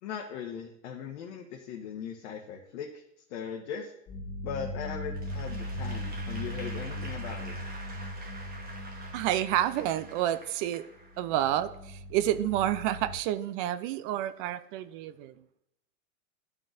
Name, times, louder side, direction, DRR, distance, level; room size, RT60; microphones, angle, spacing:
voice 1, 0.0-3.0 3.3-3.9 4.4-7.6, left 7 dB, 55° left, 1 dB, 1.1 m, -39 dB
sound 1, 4.1-10.4 11.0-13.2, equal, 30° left, 1.4 m, -39 dB
Applause / Crowd, 5.1-11.5, right 2 dB, 20° right, 1.2 m, -47 dB
voice 2, 9.1-10.8 11.2-15.3, right 12 dB, 40° right, 13 dB, 0.4 m, -29 dB
12.0 x 4.0 x 2.5 m, 0.77 s
hypercardioid pair, 120°, 42 cm